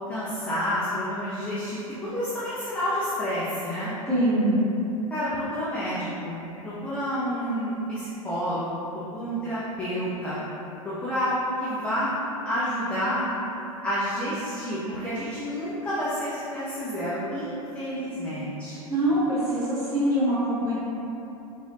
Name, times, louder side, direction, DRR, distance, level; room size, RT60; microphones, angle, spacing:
voice 1, 0.1-3.9 5.1-8.7 9.1-10.4 11.0-12.1 12.4-13.3 13.8-18.9, equal, 5° left, -11 dB, 0.4 m, -29 dB
voice 2, 4.1-4.5 18.9-20.8, right 1 dB, 20° right, -10 dB, 1.0 m, -23 dB
2.7 x 2.3 x 2.8 m, 3.0 s
figure-of-eight pair, 90°, 19 cm